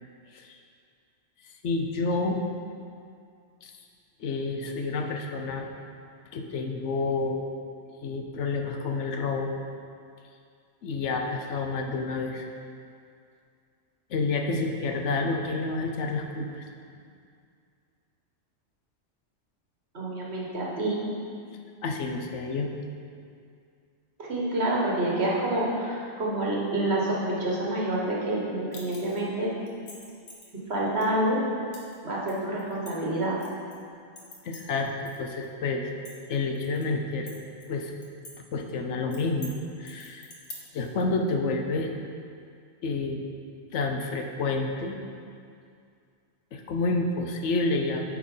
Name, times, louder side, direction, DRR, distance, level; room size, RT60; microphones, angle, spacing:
voice 1, 1.6-2.4 3.6-3.7 4.2-5.7 6.3-7.4 8.0-9.6 10.8-12.5 14.1-16.6 21.8-22.7 34.4-35.9 36.3-37.4 37.7-37.9 38.5-40.3 40.7-41.9 42.8-43.2 43.7-45.0 46.5-48.2, left 3 dB, 85° left, 3 dB, 1.1 m, -29 dB
voice 2, 19.9-21.1 24.2-29.5 30.7-31.4 32.0-33.4, right 1 dB, 65° right, -4 dB, 1.7 m, -27 dB
sound 1, 28.7-29.3 29.7-30.5 31.0-31.1 31.7-32.0 32.3-33.8 34.2-35.2 35.4-35.5 35.9-36.9 37.3-38.3 38.6-38.7 39.1-39.5 39.9-40.9, left 2 dB, 70° left, 1.5 m, -45 dB
8.8 x 4.6 x 5.4 m, 2.3 s
omnidirectional pair, 1.2 m